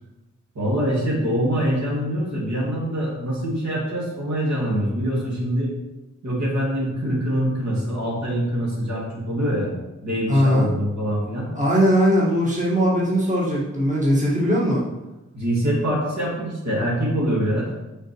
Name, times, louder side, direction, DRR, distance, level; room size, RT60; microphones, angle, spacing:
voice 1, 0.5-5.7 6.2-9.7 10.0-11.5 15.3-17.7, equal, 70° right, -4 dB, 2.6 m, -24 dB
voice 2, 10.3-10.7 11.5-14.8, equal, 25° right, -6 dB, 1.7 m, -19 dB
6.4 x 5.1 x 4.7 m, 1.0 s
wide cardioid pair, 130°, 29 cm